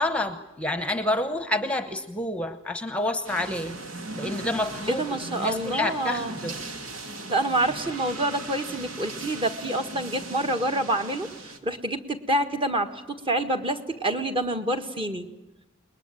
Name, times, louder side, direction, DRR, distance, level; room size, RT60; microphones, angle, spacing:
voice 1, 0.0-3.7 4.2-5.0 5.3-6.5, left 1 dB, 5° left, 10 dB, 1.1 m, -28 dB
sound 1, 3.2-11.6, right 2 dB, 80° right, 2.5 m, -38 dB
voice 2, 4.9-6.4 7.3-15.2, right 1 dB, 25° right, 6 dB, 1.6 m, -27 dB
29.0 x 20.5 x 9.0 m, 1.0 s
head